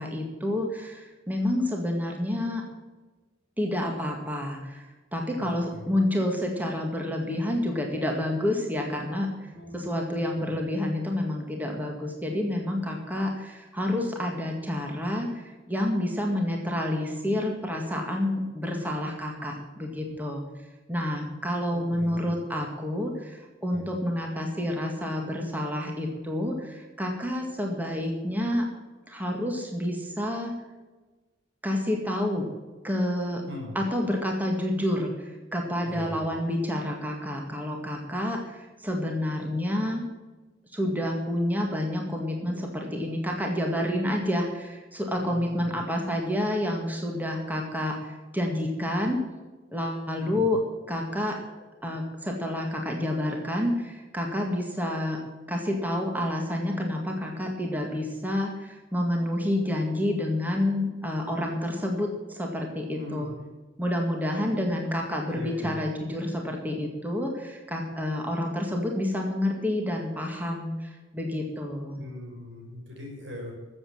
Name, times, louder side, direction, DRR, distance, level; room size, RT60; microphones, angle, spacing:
voice 1, 0.0-2.6 3.6-20.4 20.9-28.7 29.1-30.5 31.6-32.5 32.8-33.4 33.8-40.0 40.7-49.2 49.7-50.6 50.9-51.4 51.8-55.2 55.5-63.3 63.8-72.0, left 1 dB, 10° right, 1 dB, 2.0 m, -29 dB
voice 2, 5.4-5.9 9.5-10.5 20.1-20.2 21.7-22.3 23.7-23.9 33.5-33.7 35.8-36.2 45.2-45.7 50.1-50.5 63.0-63.3 65.3-65.8 72.0-73.5, left 1 dB, 70° right, 1 dB, 4.9 m, -41 dB
14.0 x 7.9 x 7.2 m, 1.3 s
head